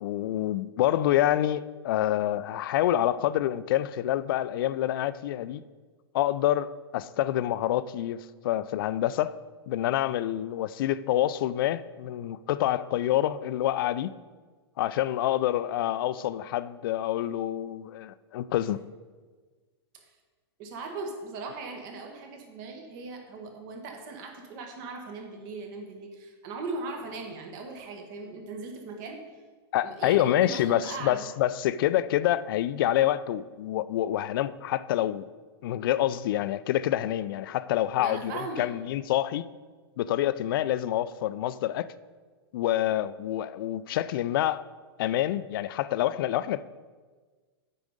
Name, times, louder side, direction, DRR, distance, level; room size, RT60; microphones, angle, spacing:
voice 1, 0.0-5.6 6.1-9.4 9.7-14.1 14.8-18.8 29.7-35.3 35.6-39.4 40.0-41.9 42.5-44.6 45.0-46.6, left 13 dB, 55° left, 0.4 m, -27 dB
voice 2, 20.6-29.2 29.8-31.3 38.0-38.8, right 3 dB, 50° right, 1.5 m, -39 dB
8.4 x 5.1 x 5.0 m
hypercardioid pair, 115°, 14 cm